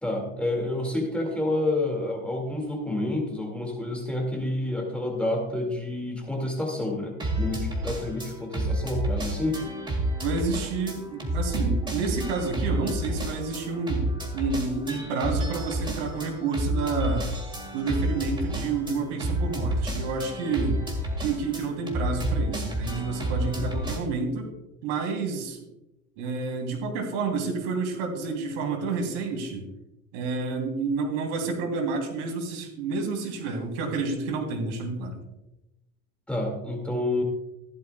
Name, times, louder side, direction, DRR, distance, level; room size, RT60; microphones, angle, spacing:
voice 1, 0.0-9.6 36.3-37.2, left 1 dB, 5° left, 0 dB, 2.1 m, -29 dB
sound 1, 7.2-24.0, right 1 dB, 15° right, 2.0 m, -30 dB
voice 2, 10.2-17.3 17.7-20.8 21.2-24.5 24.8-25.6 26.2-29.7 30.1-35.2, right 4 dB, 90° right, 3 dB, 3.2 m, -29 dB
15.0 x 11.5 x 2.3 m, 0.95 s
cardioid pair, 160°, 34 cm